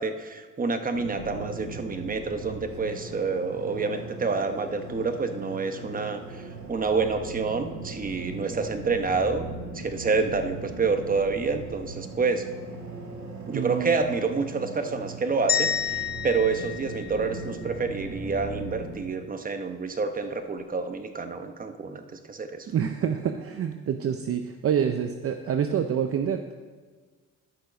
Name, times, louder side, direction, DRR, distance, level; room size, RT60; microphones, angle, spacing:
voice 1, 0.0-9.5 9.7-12.4 13.5-22.7, right 4 dB, 30° right, 7 dB, 0.9 m, -28 dB
sound 1, 0.9-18.9, right 3 dB, 70° right, 2.4 m, -39 dB
voice 2, 13.5-13.9 22.7-26.5, right 8 dB, 50° right, 7 dB, 0.6 m, -27 dB
sound 2, 15.5-17.7, left 8 dB, 30° left, 1.2 m, -29 dB
11.5 x 6.4 x 5.0 m, 1.4 s
cardioid pair, 90°, 30 cm